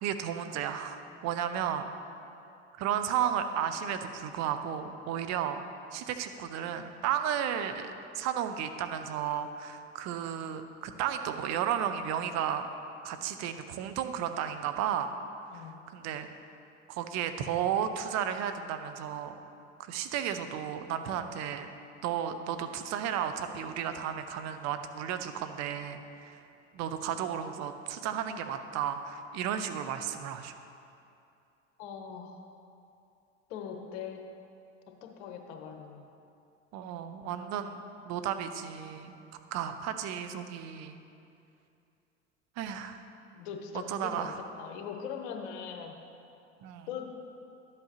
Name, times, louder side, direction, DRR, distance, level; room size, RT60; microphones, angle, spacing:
voice 1, 0.0-1.9 2.8-5.6 5.9-12.7 13.0-15.1 15.5-15.7 15.9-16.3 16.9-19.4 19.8-21.7 22.0-26.4 26.7-30.6 36.7-37.8 38.1-39.2 39.5-41.0 42.6-43.0 43.9-44.4 46.6-46.9, right 9 dB, 45° right, 8 dB, 0.7 m, -33 dB
voice 2, 31.8-32.5 33.5-34.2 35.0-36.0 43.3-45.9 46.9-47.0, left 7 dB, 60° left, 3 dB, 1.1 m, -41 dB
11.5 x 7.8 x 3.0 m, 2.6 s
hypercardioid pair, 75°, 36 cm